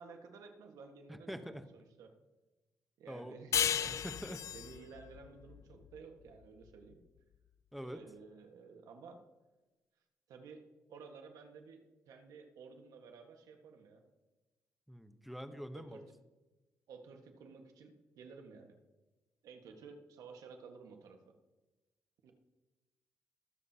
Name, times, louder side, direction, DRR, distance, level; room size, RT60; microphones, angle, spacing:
voice 1, 0.0-2.1 3.0-3.9 4.5-7.0 7.8-9.2 10.3-10.6 10.9-14.0 15.7-16.0 16.9-18.7 19.4-21.2 22.2-22.3, right 5 dB, 85° right, 4 dB, 1.5 m, -53 dB
voice 2, 1.1-1.7 3.1-3.4 3.9-4.4 7.7-8.0 14.9-16.1, equal, ahead, 9 dB, 1.0 m, -45 dB
sound 1, 3.5-6.7, left 9 dB, 60° left, 0.3 m, -35 dB
22.0 x 7.7 x 2.9 m, 1.1 s
cardioid pair, 80°, 6 cm